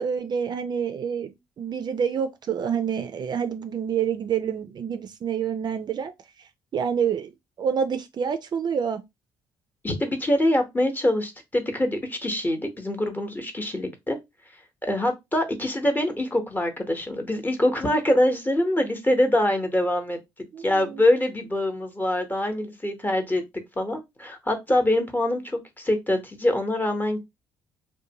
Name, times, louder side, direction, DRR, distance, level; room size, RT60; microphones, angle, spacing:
voice 1, 0.0-6.1 6.7-7.3 7.6-9.0 20.5-21.0, right 7 dB, 45° right, 0.4 m, -27 dB
voice 2, 9.8-14.2 14.8-20.2 20.6-23.4 23.8-27.2, left 1 dB, 20° left, 0.9 m, -24 dB
2.5 x 2.2 x 2.8 m
hypercardioid pair, 55°, 10 cm